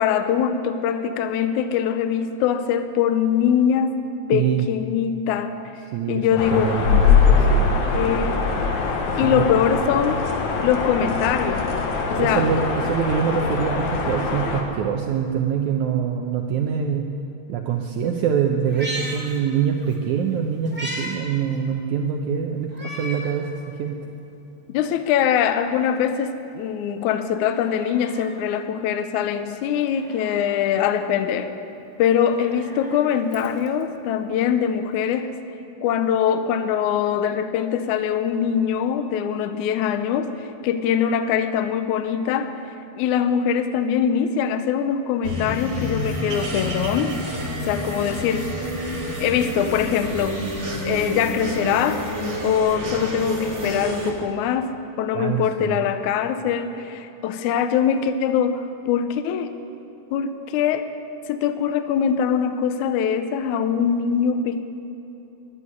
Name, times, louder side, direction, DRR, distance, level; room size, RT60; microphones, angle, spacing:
voice 1, 0.0-4.0 4.3-5.6 6.1-6.7 7.3-7.6 7.9-8.5 9.2-10.2 10.6-11.7 12.1-12.5 24.7-31.5 32.0-35.3 35.8-42.5 43.0-47.2 47.7-48.5 49.2-50.4 50.8-52.0 52.4-54.7 55.0-59.5 60.1-60.9 61.3-64.6, left 8 dB, 85° left, 9 dB, 1.7 m, -22 dB
voice 2, 4.3-4.7 5.9-7.8 9.2-9.5 12.2-17.1 17.5-24.0 55.1-55.9, right 7 dB, 85° right, 3 dB, 1.7 m, -24 dB
sound 1, 6.4-14.6, left 5 dB, 65° left, 2.4 m, -22 dB
Meow, 18.6-20.0 20.3-21.2 21.5-21.6 22.7-23.4 23.9-24.0 25.0-26.0 27.5-28.5 29.9-30.7 32.2-33.8 35.0-35.1, equal, 5° right, 1.5 m, -37 dB
sound 2, 45.2-54.1, equal, 30° right, 1.6 m, -29 dB
11.0 x 11.0 x 9.6 m, 3.0 s
omnidirectional pair, 4.3 m